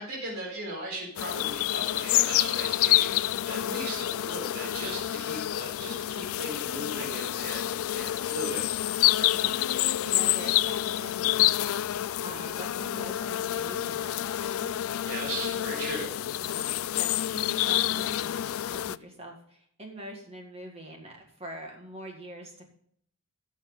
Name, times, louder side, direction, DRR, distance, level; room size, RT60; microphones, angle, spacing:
voice 1, 0.0-8.7 15.0-16.1, right 1 dB, 65° right, -3 dB, 4.5 m, -37 dB
sound 1, 1.2-19.0, left 13 dB, 65° left, 0.3 m, -28 dB
voice 2, 9.2-11.8 12.2-14.8 16.4-16.7 16.9-22.7, right 1 dB, 30° right, 1 dB, 1.8 m, -44 dB
14.5 x 7.1 x 3.9 m, 0.64 s
head